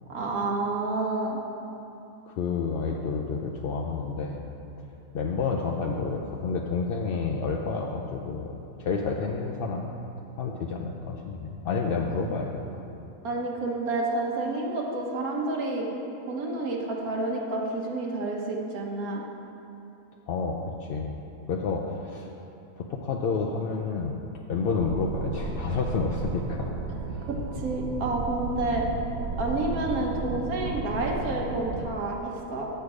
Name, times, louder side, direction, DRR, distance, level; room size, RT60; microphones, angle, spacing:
voice 1, 0.1-1.4 13.2-15.9 16.3-19.2 27.6-28.9 29.4-32.7, right 2 dB, 85° right, -1 dB, 1.5 m, -29 dB
voice 2, 2.3-4.4 4.8-4.9 5.1-9.9 10.4-12.8 20.3-21.2 21.5-22.3 22.8-24.2 24.5-26.7 27.1-27.2, left 4 dB, 70° left, 0 dB, 0.5 m, -30 dB
sound 1, 24.8-31.9, right 3 dB, 65° right, 0.9 m, -34 dB
8.0 x 6.6 x 4.8 m, 2.8 s
omnidirectional pair, 1.5 m